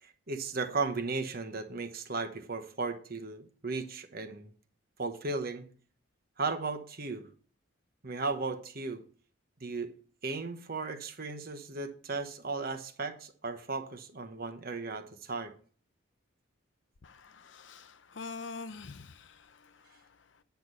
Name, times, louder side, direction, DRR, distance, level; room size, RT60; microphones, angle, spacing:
voice 1, 0.0-4.5 5.0-5.6 6.4-7.3 8.0-9.0 9.6-9.9 10.2-15.5, right 3 dB, 50° right, 1.1 m, -36 dB
voice 2, 17.0-20.4, left 4 dB, 65° left, 0.7 m, -46 dB
9.4 x 6.4 x 5.4 m
head